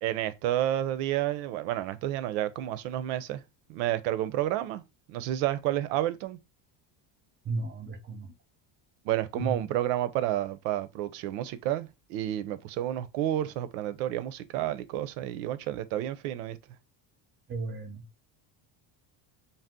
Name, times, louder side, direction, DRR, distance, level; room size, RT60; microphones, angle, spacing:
voice 1, 0.0-3.4 3.7-4.8 5.1-6.4 9.1-16.6, right 13 dB, 90° right, 0.5 m, -30 dB
voice 2, 7.4-8.3 9.3-9.6 17.5-18.0, right 3 dB, 25° right, 0.6 m, -34 dB
2.7 x 2.1 x 3.5 m
cardioid pair, 115°, 48 cm